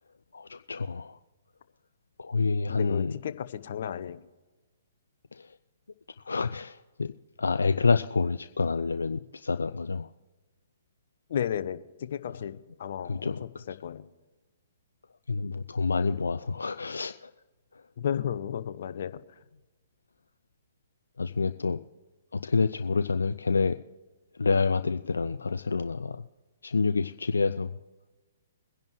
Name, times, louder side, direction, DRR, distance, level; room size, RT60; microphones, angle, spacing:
voice 1, 0.3-1.2 2.2-3.2 5.3-5.6 6.2-7.1 7.4-10.1 13.0-13.6 15.3-17.3 17.7-17.8 21.2-21.8 22.3-23.8 24.4-26.2 26.6-27.7, left 4 dB, 80° left, 10 dB, 0.4 m, -28 dB
voice 2, 2.7-4.2 11.3-12.5 12.8-13.3 13.8-14.1 18.0-19.2, left 9 dB, 55° left, 12 dB, 0.8 m, -33 dB
23.0 x 10.5 x 3.1 m, 1.2 s
figure-of-eight pair, 125°, 0 cm